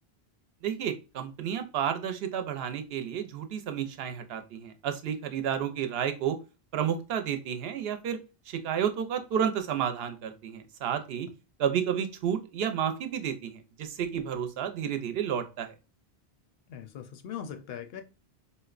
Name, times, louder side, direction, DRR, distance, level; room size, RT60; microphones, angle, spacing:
voice 1, 0.6-6.4 6.7-8.2 8.5-11.3 11.6-15.7, right 8 dB, 75° right, 0.8 m, -31 dB
voice 2, 16.7-18.0, left 8 dB, 75° left, 0.8 m, -40 dB
3.9 x 2.1 x 2.3 m
omnidirectional pair, 1.0 m